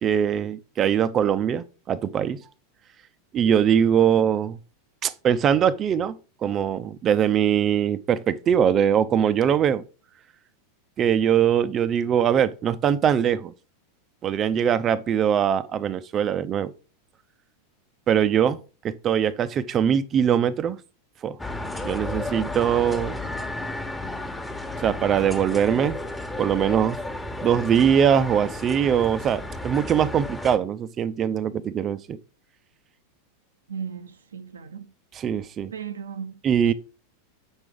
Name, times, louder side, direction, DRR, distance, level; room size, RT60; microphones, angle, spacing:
voice 1, 0.0-2.4 3.3-4.6 5.0-6.2 6.4-9.8 11.0-13.5 14.2-16.7 18.1-18.6 18.8-20.8 21.2-21.4 21.8-23.2 24.8-26.0 26.4-27.0 27.4-32.2 35.1-35.7 36.4-36.7, right 8 dB, 35° right, 0.6 m, -22 dB
sound 1, 21.4-30.6, left 2 dB, 10° left, 1.3 m, -33 dB
voice 2, 33.7-34.9 35.7-36.4, right 7 dB, 80° right, 0.6 m, -36 dB
7.9 x 6.1 x 3.6 m
hypercardioid pair, 90°, 0 cm